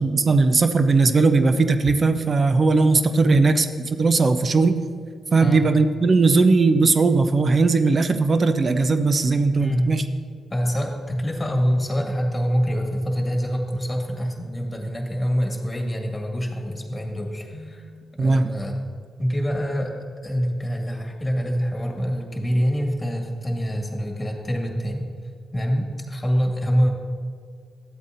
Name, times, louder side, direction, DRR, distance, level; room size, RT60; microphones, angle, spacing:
voice 1, 0.0-3.6 4.0-4.8 5.3-10.0 18.2-18.5, right 3 dB, 50° right, 9 dB, 0.6 m, -18 dB
voice 2, 9.6-10.0 10.5-17.9 18.1-18.8 19.2-19.9 20.2-25.1 25.5-26.9, equal, 20° left, 1 dB, 1.9 m, -25 dB
12.5 x 8.2 x 2.6 m, 2.1 s
supercardioid pair, 45°, 0 cm